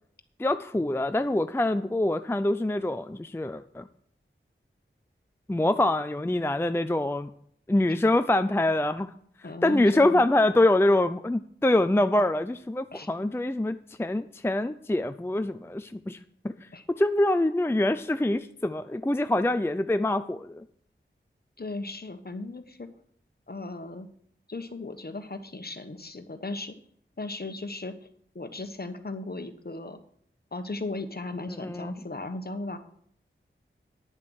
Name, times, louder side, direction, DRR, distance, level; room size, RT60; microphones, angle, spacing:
voice 1, 0.4-3.9 5.5-7.3 7.7-9.1 9.6-16.2 16.4-16.5 17.0-20.6 31.5-32.0, left 1 dB, 10° left, 10 dB, 0.5 m, -25 dB
voice 2, 9.4-10.2 12.9-13.1 16.7-16.8 21.6-22.9 23.5-24.1 24.5-26.8 27.2-27.9 28.3-30.0 30.5-32.8, left 2 dB, 50° left, 9 dB, 1.2 m, -36 dB
10.5 x 7.5 x 6.4 m, 0.64 s
wide cardioid pair, 55°, 21 cm